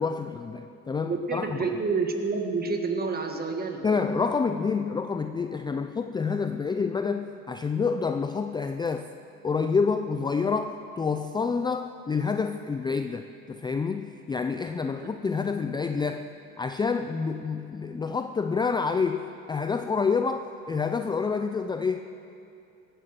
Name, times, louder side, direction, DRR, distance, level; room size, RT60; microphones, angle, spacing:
voice 1, 0.0-1.7 3.8-9.1 9.4-22.0, left 5 dB, 15° left, 8 dB, 0.4 m, -28 dB
voice 2, 1.1-3.8 15.0-15.3, right 4 dB, 30° right, 4 dB, 1.7 m, -29 dB
17.0 x 9.0 x 7.6 m, 2.7 s
supercardioid pair, 105°, 33 cm